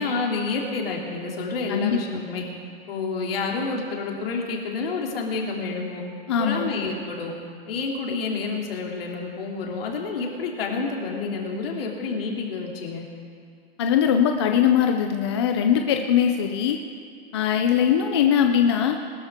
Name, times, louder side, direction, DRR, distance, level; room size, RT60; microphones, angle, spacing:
voice 1, 0.0-2.4 2.9-6.0 6.4-7.3 7.7-13.0, left 4 dB, 65° left, -1 dB, 2.9 m, -29 dB
voice 2, 1.7-2.2 6.3-6.7 13.8-16.8 17.3-19.0, left 8 dB, 25° left, 4 dB, 0.4 m, -21 dB
21.0 x 13.0 x 3.6 m, 2.2 s
supercardioid pair, 175°, 31 cm